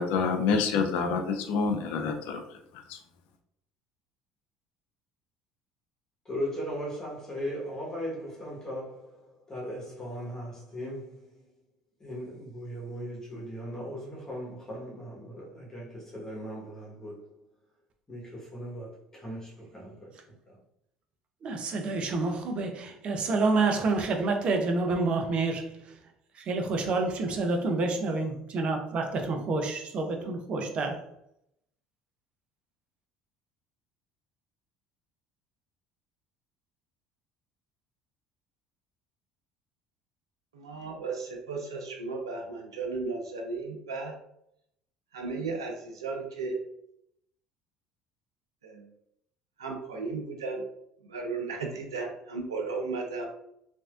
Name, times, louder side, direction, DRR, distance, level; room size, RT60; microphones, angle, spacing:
voice 1, 0.0-2.4 2.9-3.0, left 5 dB, 70° left, 0.5 m, -27 dB
voice 2, 6.3-9.0 9.5-11.1 12.0-17.2 18.1-20.1, equal, 25° left, 1.2 m, -38 dB
voice 3, 21.4-26.0 26.3-31.1, right 3 dB, 50° right, 0.6 m, -28 dB
voice 4, 40.5-44.1 45.1-46.6 48.6-48.8 49.6-50.6 51.1-53.3, right 4 dB, 90° right, 0.5 m, -35 dB
3.1 x 2.6 x 2.4 m
hypercardioid pair, 65°, 2 cm